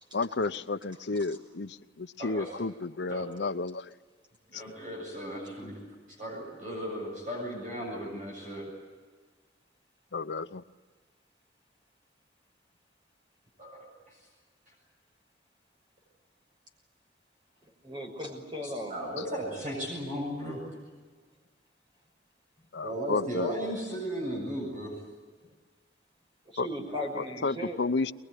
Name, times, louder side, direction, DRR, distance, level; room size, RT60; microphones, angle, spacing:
voice 1, 0.1-3.8 4.5-4.6 10.1-10.6 22.7-23.5 26.6-26.7 27.4-28.1, left 3 dB, 70° left, 11 dB, 0.7 m, -31 dB
voice 2, 2.2-2.5 3.1-3.2 4.5-5.8 6.2-8.7 13.6-14.2 18.6-20.6 22.8-24.9 26.9-27.0, equal, 45° right, -2 dB, 7.6 m, -36 dB
voice 3, 17.6-18.9 25.4-25.5 26.4-27.8, left 1 dB, 30° right, 2 dB, 6.1 m, -38 dB
22.5 x 22.0 x 10.0 m, 1.5 s
head